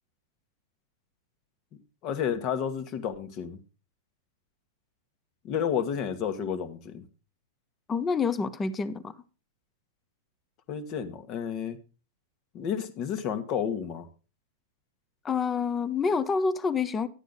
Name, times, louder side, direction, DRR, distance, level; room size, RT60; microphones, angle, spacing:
voice 1, 2.0-3.6 5.4-7.0 10.7-11.8 12.5-14.1, left 8 dB, 40° left, 1.6 m, -31 dB
voice 2, 7.9-9.1 15.2-17.1, left 5 dB, 20° left, 0.9 m, -27 dB
12.0 x 9.1 x 4.0 m
hypercardioid pair, 100°, 0 cm